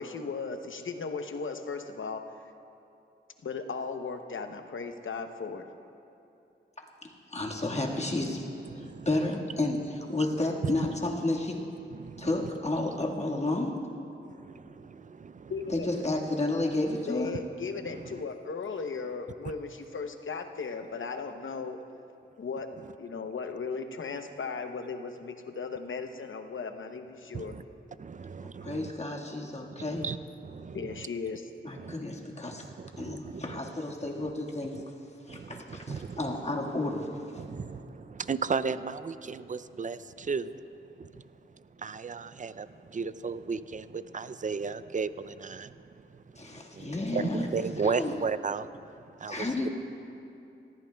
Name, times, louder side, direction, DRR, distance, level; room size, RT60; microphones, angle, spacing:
voice 1, 0.0-2.3 3.4-5.7 15.5-15.9 17.1-21.8 22.4-22.7 23.0-27.6 30.7-31.5, left 4 dB, 70° left, 7 dB, 0.8 m, -36 dB
voice 2, 7.3-8.5 8.8-11.6 12.2-13.8 15.7-17.3 28.6-30.0 31.6-32.7 33.0-34.8 35.3-37.4 46.4-47.5 47.8-48.1 49.3-49.7, left 2 dB, 30° left, -1 dB, 1.7 m, -31 dB
voice 3, 8.6-9.1 10.6-10.9 11.9-12.4 14.3-15.5 17.9-18.2 27.3-27.6 28.0-28.9 30.0-31.1 31.8-32.0 32.8-33.7 34.2-34.3 34.7-34.8 35.3-36.4 37.4-49.7, right 5 dB, 40° right, 14 dB, 0.4 m, -35 dB
18.5 x 15.0 x 2.3 m, 2.7 s
cardioid pair, 55°, 21 cm